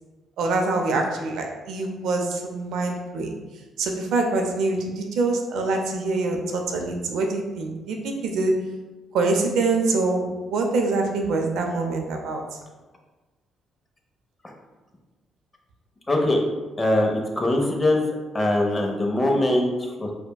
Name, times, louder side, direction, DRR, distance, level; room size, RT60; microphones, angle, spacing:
voice 1, 0.4-3.3 3.8-8.7 9.1-12.6, right 3 dB, 80° right, 2 dB, 0.5 m, -25 dB
voice 2, 16.1-16.4 16.8-18.0 18.3-20.1, left 1 dB, 20° left, 1 dB, 0.6 m, -22 dB
5.1 x 2.2 x 2.2 m, 1.2 s
cardioid pair, 90°, 0 cm